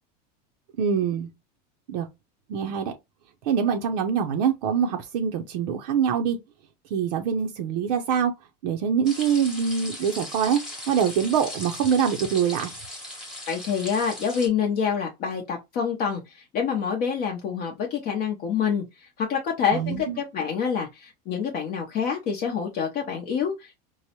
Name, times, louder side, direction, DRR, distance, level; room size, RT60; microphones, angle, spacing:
voice 1, 0.8-1.3 1.9-2.1 2.5-2.9 3.4-6.4 6.9-8.3 8.6-10.6 10.9-12.7 19.7-20.2, right 7 dB, 80° right, 0.6 m, -24 dB
sound 1, 9.0-14.5, left 1 dB, ahead, 0.9 m, -38 dB
voice 2, 13.5-18.8 19.2-23.7, left 7 dB, 35° left, 0.6 m, -27 dB
4.6 x 2.1 x 2.8 m
supercardioid pair, 165°, 21 cm